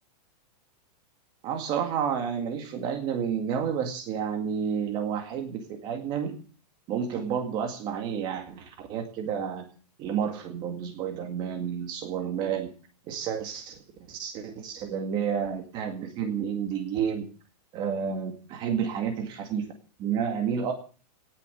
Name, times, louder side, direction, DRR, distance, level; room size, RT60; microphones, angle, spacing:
voice 1, 1.4-6.4 6.9-9.7 10.0-12.7 13.1-13.8 14.1-17.3 17.7-19.7 20.0-20.7, right 7 dB, 20° right, 5 dB, 2.0 m, -30 dB
18.0 x 7.2 x 9.6 m, 0.39 s
supercardioid pair, 180°, 21 cm